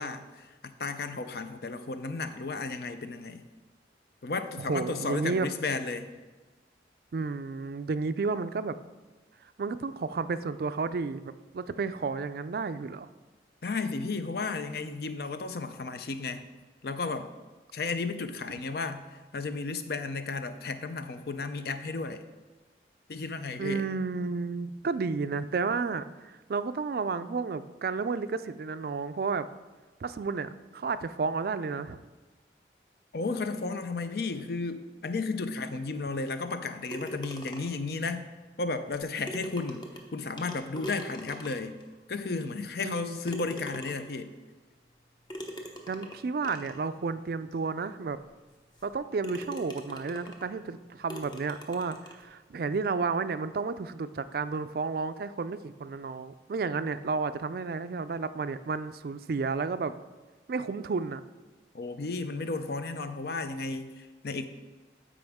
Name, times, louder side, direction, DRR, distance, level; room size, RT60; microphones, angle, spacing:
voice 1, 0.0-3.4 4.2-6.1 13.6-16.4 16.8-17.3 17.7-22.2 23.1-23.9 33.1-38.3 38.6-39.8 40.1-41.8 42.1-44.3 61.7-64.4, left 3 dB, 55° left, 10 dB, 0.5 m, -33 dB
voice 2, 4.6-5.5 7.1-8.8 9.4-13.1 23.6-29.5 30.0-32.0 42.8-43.2 45.9-48.2 48.8-59.9 60.5-61.2, right 4 dB, 55° right, 12 dB, 0.3 m, -32 dB
sound 1, 36.9-37.9 38.9-39.0 39.3-41.8 42.4-42.5 43.2-44.2 45.3-46.8 47.5-47.6 48.1-48.2 48.7-48.9 49.2-50.5 51.1-52.2, equal, 25° left, 0.8 m, -42 dB
13.0 x 4.9 x 3.6 m, 1.3 s
head